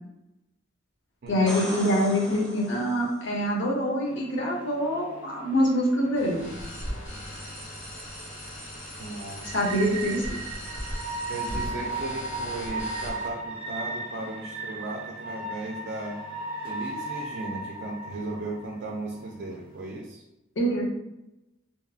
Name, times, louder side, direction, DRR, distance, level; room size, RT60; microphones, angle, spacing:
voice 1, 1.3-6.5 9.5-10.3 20.6-20.8, equal, 65° left, -2 dB, 0.7 m, -25 dB
sound 1, 1.3-3.2 6.9-7.0, equal, 5° left, 0.6 m, -38 dB
sound 2, 4.0-20.0, right 2 dB, 25° right, 1.0 m, -38 dB
sound 3, 6.1-13.3, equal, 40° left, 1.1 m, -38 dB
voice 2, 9.0-9.5 11.3-16.2 16.6-20.2, right 2 dB, 55° right, -1 dB, 0.4 m, -36 dB
2.7 x 2.5 x 2.3 m, 0.91 s
head